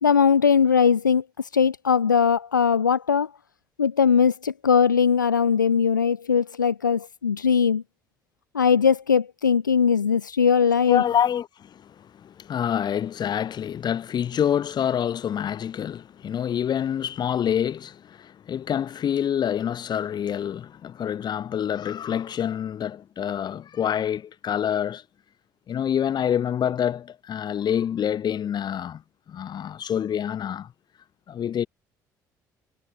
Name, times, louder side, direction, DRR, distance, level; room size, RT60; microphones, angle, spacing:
voice 1, 0.0-3.3 3.8-7.8 8.5-11.0, left 6 dB, 85° left, 0.7 m, -20 dB
voice 2, 10.9-25.0 25.7-29.0 29.3-30.7 31.3-31.7, left 9 dB, 45° left, 5.9 m, -27 dB
figure-of-eight pair, 50°, 10 cm